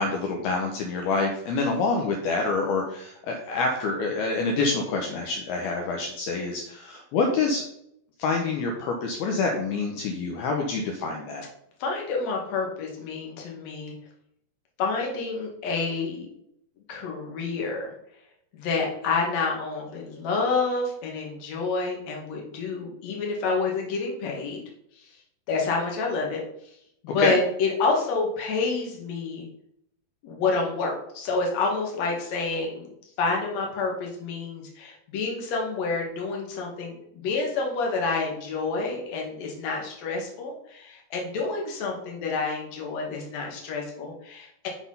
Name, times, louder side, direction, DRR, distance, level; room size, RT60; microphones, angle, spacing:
voice 1, 0.0-7.6 8.2-11.4 27.2-27.3, left 3 dB, 75° left, 1 dB, 2.6 m, -27 dB
voice 2, 11.8-13.9 14.8-16.3 16.9-17.9 18.5-24.6 25.0-25.1 25.5-26.4 27.0-29.5 30.2-44.7, left 4 dB, 50° left, 0 dB, 2.5 m, -28 dB
6.3 x 6.1 x 5.5 m, 0.73 s
omnidirectional pair, 4.9 m